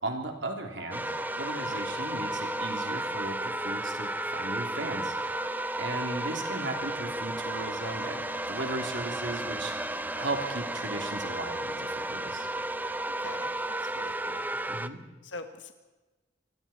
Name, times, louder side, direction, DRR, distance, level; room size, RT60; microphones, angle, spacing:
voice 1, 0.0-5.1 5.8-8.2 8.5-9.7 10.1-12.5 14.7-15.0, right 2 dB, 75° right, 3 dB, 3.3 m, -36 dB
sound 1, 0.8-14.8, left 8 dB, 15° left, 3.7 m, -48 dB
sound 2, 0.9-14.9, right 1 dB, 10° right, 0.6 m, -33 dB
voice 2, 13.1-14.5 15.2-15.7, left 3 dB, 75° left, 7 dB, 1.4 m, -44 dB
27.0 x 21.5 x 4.5 m, 1.1 s
head